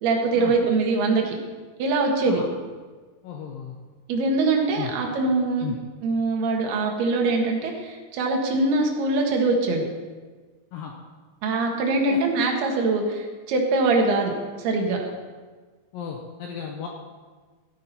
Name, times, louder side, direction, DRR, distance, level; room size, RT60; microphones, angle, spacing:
voice 1, 0.0-1.4 1.8-2.4 4.1-5.7 6.0-9.9 11.4-14.3 14.6-15.1, right 3 dB, 65° right, 1 dB, 3.4 m, -23 dB
voice 2, 3.2-3.8 4.8-4.9 5.6-5.8 10.7-10.9 12.1-12.2 15.9-16.9, left 7 dB, 75° left, 1 dB, 2.2 m, -34 dB
14.5 x 8.8 x 5.6 m, 1.4 s
omnidirectional pair, 5.1 m